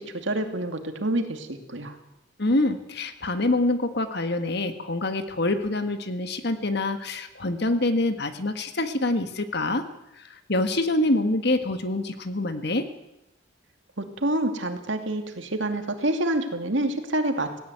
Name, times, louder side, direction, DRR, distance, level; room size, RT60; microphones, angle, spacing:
voice 1, 0.0-2.0 14.0-17.6, right 1 dB, 65° right, 6 dB, 2.5 m, -27 dB
voice 2, 2.4-9.8 10.2-12.9, left 2 dB, 55° left, 9 dB, 1.7 m, -26 dB
17.5 x 17.0 x 9.3 m, 0.89 s
head